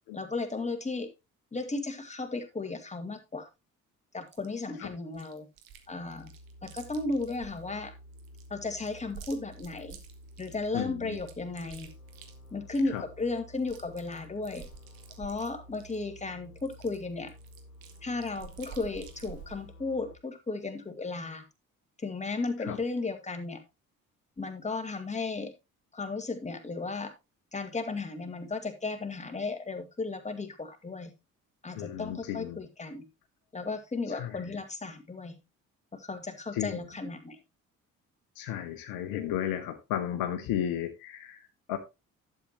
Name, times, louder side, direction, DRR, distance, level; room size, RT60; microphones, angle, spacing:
voice 1, 0.1-1.1 1.5-3.5 4.1-5.5 5.9-6.3 6.6-7.9 8.5-10.0 10.4-11.9 12.5-14.6 15.2-17.3 18.0-21.4 22.0-23.6 24.4-25.5 25.9-27.1 27.5-31.1 31.6-33.0 33.5-35.4 35.9-37.4, left 3 dB, 15° left, 2.0 m, -35 dB
Chewing mastication, 4.3-4.5 5.1-5.9 6.1-7.6 8.1-10.7 11.1-13.0 13.3-13.4 13.6-16.0 16.6-19.6, right 8 dB, 55° right, 1.7 m, -49 dB
sound 1, 5.7-20.2, equal, 85° left, 0.6 m, -52 dB
voice 2, 10.7-11.2 12.9-13.0 22.6-22.8 31.7-32.6 34.1-34.5 36.5-36.8 38.3-41.8, left 11 dB, 55° left, 1.1 m, -34 dB
11.5 x 7.6 x 3.0 m
figure-of-eight pair, 50°, 41 cm